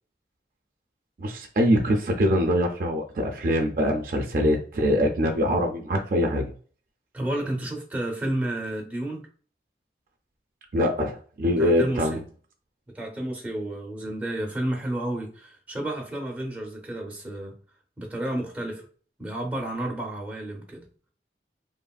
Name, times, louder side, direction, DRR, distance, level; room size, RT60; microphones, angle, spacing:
voice 1, 1.2-6.5 10.7-12.2, equal, 50° right, 2 dB, 0.4 m, -23 dB
voice 2, 7.1-9.3 11.6-12.2 12.9-17.6 18.0-18.8 19.2-20.8, right 1 dB, 10° right, -1 dB, 0.6 m, -31 dB
3.0 x 2.4 x 2.3 m, 0.43 s
head